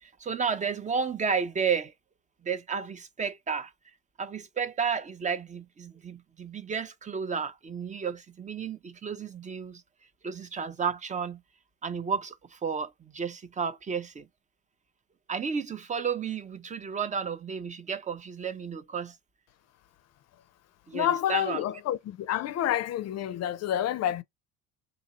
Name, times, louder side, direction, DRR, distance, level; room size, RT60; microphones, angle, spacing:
voice 1, 0.0-1.9 2.4-3.7 4.2-9.8 10.2-11.4 11.8-14.3 15.3-19.2 20.9-21.6, right 6 dB, 20° right, 0.6 m, -32 dB
voice 2, 20.9-24.2, left 11 dB, 45° left, 0.5 m, -28 dB
2.8 x 2.6 x 4.2 m
supercardioid pair, 100°, 36 cm